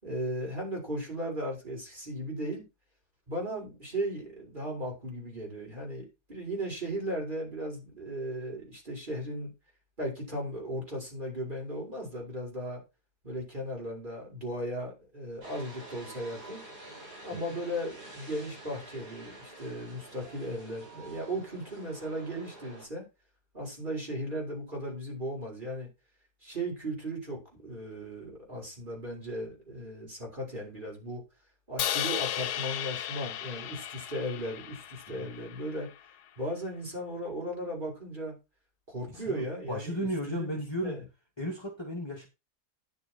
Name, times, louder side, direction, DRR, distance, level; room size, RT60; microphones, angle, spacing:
voice 1, 0.0-2.6 3.3-9.5 10.0-12.8 13.2-16.6 17.2-23.0 23.5-25.9 26.4-31.2 31.7-35.9 36.4-38.3 38.9-41.0, equal, 30° right, 4.9 m, -36 dB
sound 1, 15.4-22.9, right 2 dB, 90° right, 8.5 m, -48 dB
Crash cymbal, 31.8-36.0, left 12 dB, 80° left, 1.2 m, -35 dB
voice 2, 39.1-41.0 41.4-42.3, equal, 15° left, 2.4 m, -35 dB
10.5 x 6.8 x 4.4 m
omnidirectional pair, 1.7 m